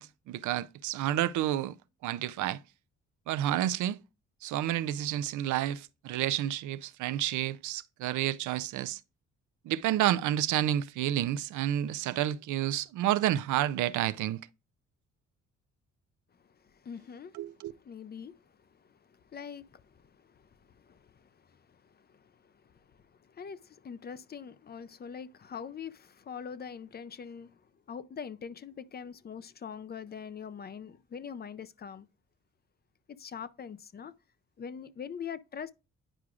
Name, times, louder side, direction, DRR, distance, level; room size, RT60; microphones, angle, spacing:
voice 1, 0.0-1.7 2.0-2.6 3.3-4.0 4.4-9.0 9.6-14.4 17.3-17.7, right 12 dB, 75° right, 0.5 m, -30 dB
voice 2, 16.4-17.4 17.8-27.6 27.9-32.1 33.1-34.1 34.6-35.7, left 7 dB, 35° left, 0.5 m, -44 dB
9.9 x 4.7 x 2.4 m
cardioid pair, 90°, 30 cm